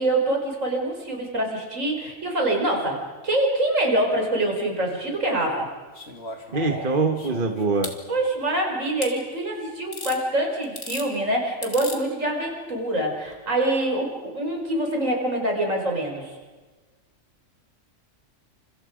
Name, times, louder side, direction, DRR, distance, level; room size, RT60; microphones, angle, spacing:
voice 1, 0.0-3.0 3.2-5.7 6.5-7.0 8.1-16.3, right 1 dB, 75° right, 1 dB, 5.6 m, -25 dB
sound 1, 5.9-8.0 9.0-9.1 9.9-10.2 10.6-11.1 11.6-12.0 13.3-13.4, left 2 dB, 55° left, 2.7 m, -36 dB
voice 2, 6.5-7.9, right 3 dB, 40° right, 5 dB, 1.7 m, -23 dB
30.0 x 27.0 x 5.2 m, 1.3 s
omnidirectional pair, 1.3 m